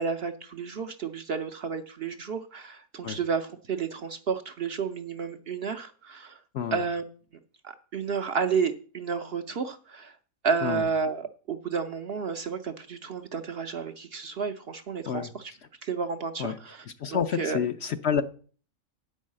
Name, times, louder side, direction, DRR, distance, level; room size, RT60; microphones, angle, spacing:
voice 1, 0.0-6.4 6.7-7.0 7.6-10.2 10.4-11.2 11.5-15.5 15.8-16.8 17.1-17.6, right 5 dB, 55° right, 0.7 m, -31 dB
voice 2, 15.1-15.6 16.4-16.6 16.9-18.2, left 7 dB, 60° left, 0.8 m, -29 dB
8.8 x 5.5 x 7.4 m
omnidirectional pair, 1.5 m